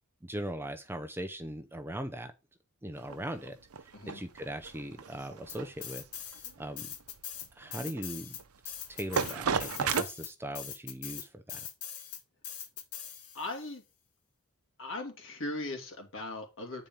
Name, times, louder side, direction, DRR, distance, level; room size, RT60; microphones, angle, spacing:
voice 1, 0.2-2.3 2.8-3.6 4.1-6.0 6.6-7.0 7.6-8.4 8.6-11.7, right 1 dB, 10° right, 0.6 m, -39 dB
sound 1, 3.0-10.0, right 6 dB, 70° right, 0.7 m, -35 dB
sound 2, 5.5-6.5 6.8-13.6, left 9 dB, 80° left, 1.4 m, -42 dB
voice 2, 13.3-13.8 14.8-16.9, left 2 dB, 60° left, 2.3 m, -38 dB
9.1 x 4.3 x 5.2 m
head